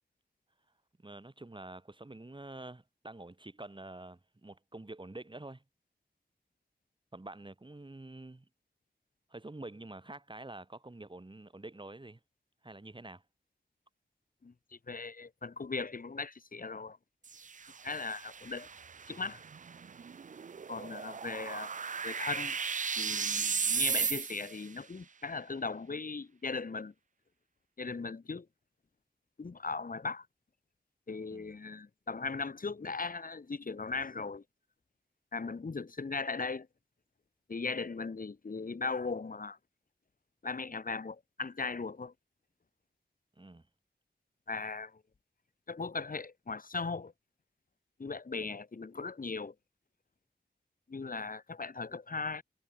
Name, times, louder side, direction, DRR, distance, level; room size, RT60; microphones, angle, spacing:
voice 1, 1.0-5.6 7.1-8.5 9.3-12.2 12.6-13.2 31.3-31.5 43.4-43.6, right 2 dB, 25° right, 3.7 m, -47 dB
voice 2, 14.4-17.0 17.8-18.7 19.1-19.4 20.7-21.7 22.0-22.6 23.0-26.9 27.8-28.5 29.4-30.3 31.1-34.4 35.3-36.7 37.5-39.6 40.4-42.1 44.5-45.0 45.7-47.1 48.0-49.5 50.9-52.4, left 4 dB, 50° left, 1.4 m, -38 dB
sound 1, 17.2-24.7, right 6 dB, 45° right, 0.4 m, -36 dB
wide cardioid pair, 80°, 18 cm